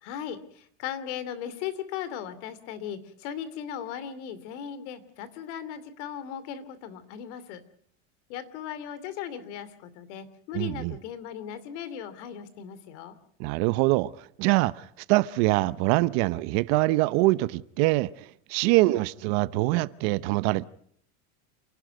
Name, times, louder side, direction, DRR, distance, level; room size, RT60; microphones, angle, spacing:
voice 1, 0.0-7.6 8.3-13.2, left 9 dB, 65° left, 2.7 m, -37 dB
voice 2, 10.5-11.0 13.4-20.6, right 20 dB, 55° right, 0.8 m, -24 dB
28.0 x 12.0 x 9.3 m
supercardioid pair, 150°, 37 cm